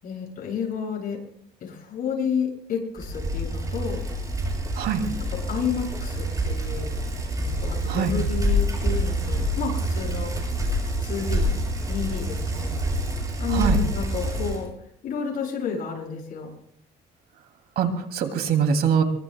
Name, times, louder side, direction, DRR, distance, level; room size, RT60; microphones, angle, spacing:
voice 1, 0.0-1.2 1.6-4.1 5.3-7.0 7.4-10.3 11.0-11.6 11.9-12.7 13.4-14.7 15.0-16.5, left 6 dB, 60° left, -1 dB, 7.8 m, -31 dB
Bicycle, 3.0-14.7, equal, 20° right, 7.1 m, -27 dB
voice 2, 17.8-19.0, right 7 dB, 70° right, 5 dB, 2.7 m, -23 dB
23.5 x 23.0 x 2.3 m, 0.68 s
cardioid pair, 110°, 17 cm